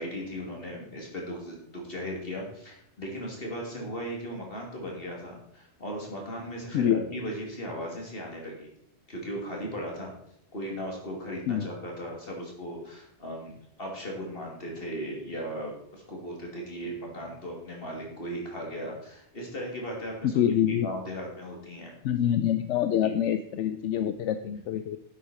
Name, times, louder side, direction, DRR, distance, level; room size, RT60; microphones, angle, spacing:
voice 1, 0.0-8.7 9.1-10.1 10.5-13.5 13.8-21.9 23.0-23.2, equal, 55° left, 0 dB, 3.0 m, -37 dB
voice 2, 6.7-7.0 11.5-11.7 20.2-20.9 22.0-25.0, left 10 dB, 85° left, 11 dB, 0.9 m, -26 dB
11.0 x 8.4 x 4.3 m, 0.73 s
omnidirectional pair, 1.2 m